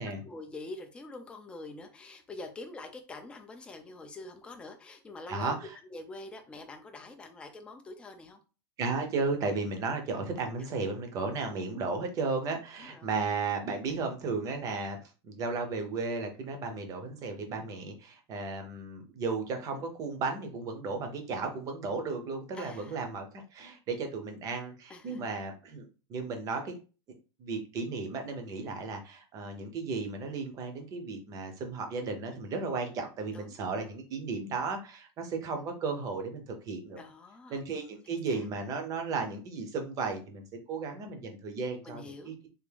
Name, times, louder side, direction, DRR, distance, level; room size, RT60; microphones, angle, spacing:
voice 1, 0.2-5.5 5.9-8.4 12.8-13.1 22.5-23.0 24.9-25.2 33.3-33.6 36.9-37.6 38.0-38.4 41.8-42.4, left 2 dB, 5° left, 5 dB, 0.4 m, -45 dB
voice 2, 5.3-5.8 8.8-15.0 15.2-26.7 27.4-37.0 37.5-42.5, right 4 dB, 25° right, 5 dB, 0.7 m, -34 dB
3.5 x 2.4 x 3.4 m, 0.34 s
supercardioid pair, 165°, 14 cm